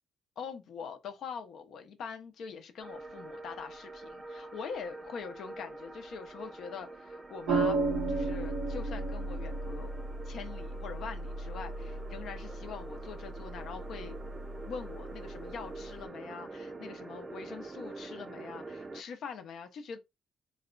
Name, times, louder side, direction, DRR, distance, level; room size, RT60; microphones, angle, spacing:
voice 1, 0.4-7.8 8.1-9.9 10.2-14.2 14.7-20.0, left 6 dB, 70° left, 0.7 m, -43 dB
sound 1, 2.8-19.0, right 3 dB, 30° right, 0.5 m, -46 dB
sound 2, 7.5-16.0, right 3 dB, 80° right, 0.9 m, -35 dB
4.1 x 2.3 x 3.8 m
cardioid pair, 90°, 0 cm